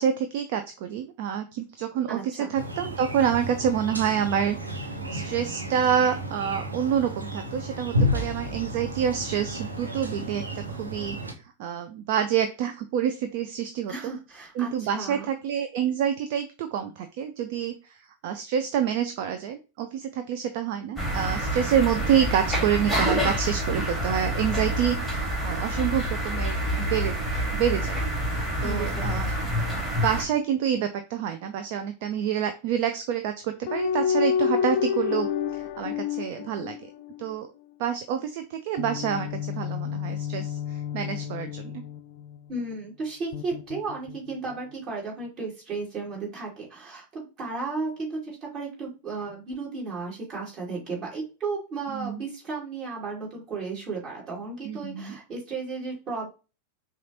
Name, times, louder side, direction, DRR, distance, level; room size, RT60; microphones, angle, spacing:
voice 1, 0.0-4.6 4.8-11.2 11.6-14.1 14.6-18.0 18.2-27.2 27.5-28.0 28.6-29.3 29.7-36.9 37.2-37.5 37.8-41.9 51.9-52.2 54.6-55.2, right 9 dB, 50° right, 8 dB, 0.4 m, -27 dB
voice 2, 2.1-2.5 13.9-15.3 28.6-29.5 42.5-56.3, right 3 dB, 30° right, -4 dB, 2.5 m, -34 dB
sound 1, 2.5-11.3, equal, 80° right, 0.7 m, -32 dB
sound 2, 21.0-30.2, right 1 dB, 5° right, 1.7 m, -27 dB
sound 3, 33.7-37.3 38.8-42.5 43.3-44.6, left 8 dB, 50° left, 0.4 m, -29 dB
5.8 x 2.4 x 2.9 m, 0.31 s
figure-of-eight pair, 90°, 0 cm